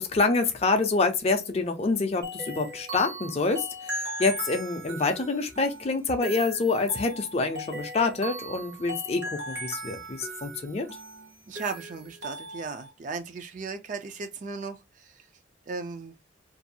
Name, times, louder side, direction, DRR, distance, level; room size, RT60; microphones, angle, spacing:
voice 1, 0.0-10.9, left 3 dB, 30° left, 0.4 m, -27 dB
sound 1, 2.2-12.9, right 1 dB, 55° right, 0.9 m, -38 dB
voice 2, 11.5-15.3 15.7-16.2, right 4 dB, 40° right, 0.3 m, -36 dB
2.6 x 2.3 x 2.6 m
head